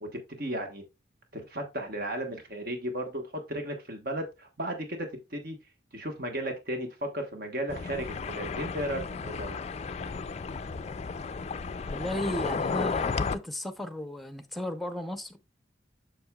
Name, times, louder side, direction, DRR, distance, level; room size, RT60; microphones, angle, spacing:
voice 1, 0.0-0.8 1.3-3.2 3.5-5.6 5.9-9.6, right 1 dB, 55° right, 1.3 m, -35 dB
sound 1, 7.7-13.4, left 4 dB, 35° left, 0.4 m, -33 dB
voice 2, 11.9-15.4, left 1 dB, ahead, 0.7 m, -35 dB
7.7 x 6.3 x 2.3 m
head